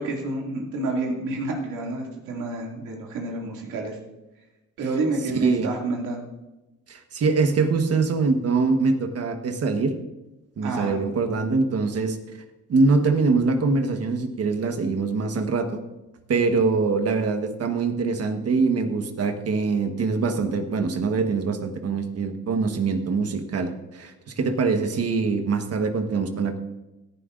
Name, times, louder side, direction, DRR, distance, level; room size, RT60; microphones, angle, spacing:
voice 1, 0.0-4.0 4.8-6.3 10.6-11.0, right 2 dB, 85° right, 0 dB, 2.5 m, -29 dB
voice 2, 5.3-5.7 6.9-9.9 10.6-12.2 12.7-15.7 16.3-26.6, right 4 dB, 55° right, 6 dB, 1.4 m, -23 dB
17.0 x 11.0 x 2.6 m, 1.0 s
cardioid pair, 90°, 30 cm